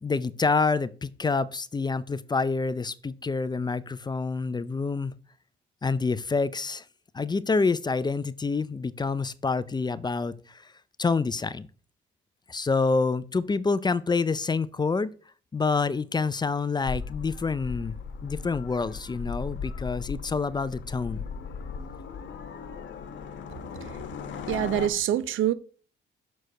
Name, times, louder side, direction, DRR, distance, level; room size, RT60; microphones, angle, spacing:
voice 1, 0.0-5.1 5.8-6.8 7.1-10.6 11.0-11.7 12.5-15.1 15.5-17.9 18.2-21.2, left 4 dB, 20° left, 0.5 m, -27 dB
sound 1, 16.8-24.9, left 6 dB, 70° left, 1.2 m, -37 dB
voice 2, 24.5-25.5, right 11 dB, 80° right, 0.7 m, -25 dB
6.5 x 4.7 x 5.7 m
cardioid pair, 90°, 20 cm